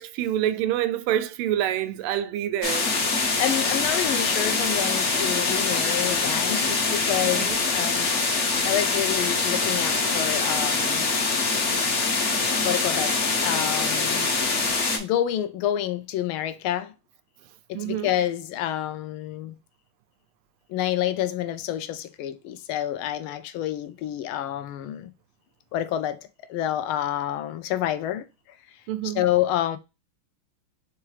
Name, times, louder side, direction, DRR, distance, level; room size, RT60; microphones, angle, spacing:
voice 1, 0.0-2.9 7.2-7.6 17.7-18.2 28.9-29.3, right 11 dB, 90° right, 1.5 m, -27 dB
sound 1, 2.6-15.0, left 3 dB, 50° left, 0.9 m, -24 dB
voice 2, 3.4-8.1 8.6-11.1 12.6-13.2 13.4-14.4 15.0-16.9 17.7-19.6 20.7-25.1 25.7-28.3 29.0-29.8, left 12 dB, 80° left, 1.4 m, -28 dB
4.5 x 3.5 x 3.2 m
omnidirectional pair, 2.3 m